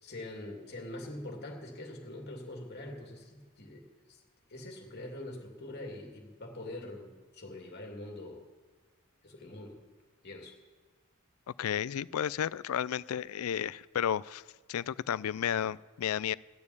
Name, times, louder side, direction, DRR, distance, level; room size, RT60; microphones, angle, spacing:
voice 1, 0.0-4.2 4.5-8.5 9.2-9.8 10.2-10.6, left 1 dB, 50° left, 1 dB, 2.5 m, -44 dB
voice 2, 11.6-14.4 14.7-16.4, left 9 dB, 85° left, 20 dB, 0.4 m, -32 dB
14.0 x 7.0 x 9.8 m, 1.4 s
head